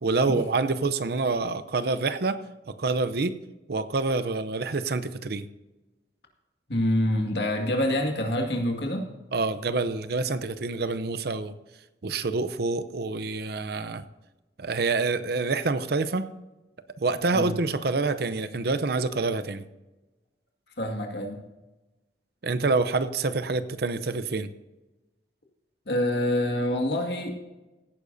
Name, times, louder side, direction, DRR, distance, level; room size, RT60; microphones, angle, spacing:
voice 1, 0.0-2.4 2.8-3.4 3.7-5.5 9.3-11.5 12.0-14.0 14.6-16.3 17.0-19.6 22.4-24.5, right 3 dB, 60° right, 11 dB, 0.6 m, -27 dB
voice 2, 6.7-9.1 17.3-17.5 20.8-21.4 25.9-27.3, left 1 dB, 65° left, 2 dB, 2.0 m, -26 dB
16.5 x 10.0 x 2.7 m, 1.1 s
head